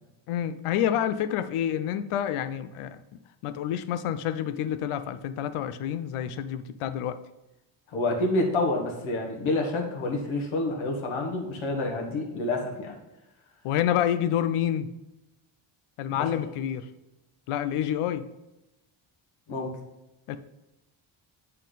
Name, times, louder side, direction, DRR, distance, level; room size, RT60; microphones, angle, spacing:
voice 1, 0.3-3.0 3.4-7.2 13.6-14.9 16.0-16.8 17.5-18.2 20.3-20.4, left 10 dB, 85° left, 12 dB, 0.6 m, -28 dB
voice 2, 7.9-13.0 16.1-16.4 19.5-19.7, left 2 dB, 70° left, 1 dB, 1.6 m, -28 dB
8.1 x 4.4 x 4.0 m, 0.96 s
cardioid pair, 145°, 50 cm